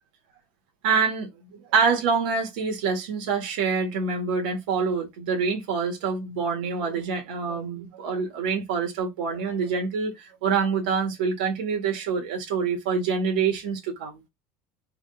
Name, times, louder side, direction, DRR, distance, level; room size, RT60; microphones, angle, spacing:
voice 1, 0.8-14.2, right 5 dB, 90° right, 1.5 m, -26 dB
3.6 x 3.2 x 3.8 m
cardioid pair, 175°, 5 cm